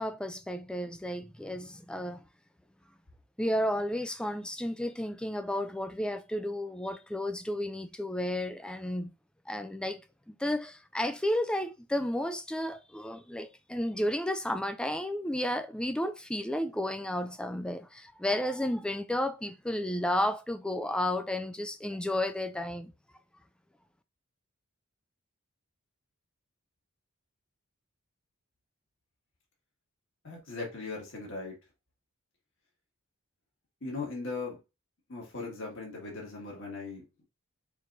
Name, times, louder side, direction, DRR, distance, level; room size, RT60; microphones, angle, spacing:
voice 1, 0.0-2.2 3.4-9.1 9.5-10.0 10.3-22.9, left 1 dB, 5° left, 0.3 m, -32 dB
voice 2, 30.2-31.6 33.8-34.6 35.1-37.0, left 3 dB, 55° left, 2.0 m, -38 dB
4.5 x 4.5 x 2.6 m
head